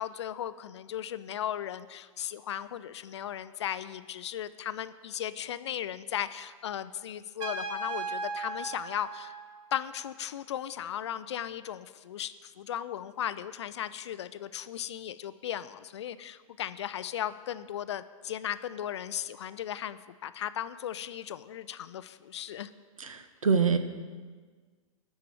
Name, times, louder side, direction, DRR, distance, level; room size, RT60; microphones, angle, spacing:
voice 1, 0.0-9.3 9.7-22.7, left 10 dB, 50° left, 14 dB, 0.4 m, -36 dB
Trumpet, 7.4-10.0, right 3 dB, 30° right, 1.4 m, -37 dB
voice 2, 23.0-23.8, right 5 dB, 70° right, 9 dB, 1.0 m, -25 dB
13.0 x 4.7 x 8.7 m, 1.5 s
figure-of-eight pair, 105°, 18 cm